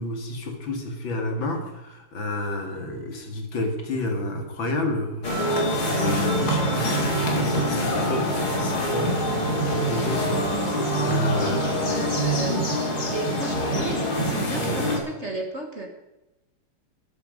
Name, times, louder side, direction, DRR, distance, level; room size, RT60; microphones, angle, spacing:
voice 1, 0.0-12.2, left 2 dB, 60° left, 4 dB, 2.8 m, -30 dB
sound 1, 5.2-15.0, equal, 45° left, 3.3 m, -25 dB
voice 2, 11.8-12.7 13.1-15.9, right 2 dB, 35° right, 3 dB, 1.7 m, -33 dB
13.5 x 12.5 x 5.2 m, 0.99 s
omnidirectional pair, 2.4 m